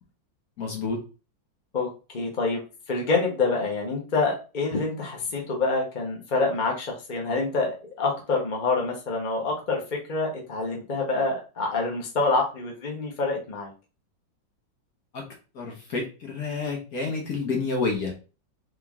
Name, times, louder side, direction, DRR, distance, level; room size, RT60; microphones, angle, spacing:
voice 1, 0.6-1.0 15.1-15.3 15.5-18.2, left 4 dB, 55° left, 0 dB, 1.5 m, -29 dB
voice 2, 2.1-2.6 2.9-13.7, left 3 dB, 30° left, 0 dB, 1.1 m, -26 dB
3.8 x 3.3 x 3.6 m, 0.33 s
omnidirectional pair, 2.0 m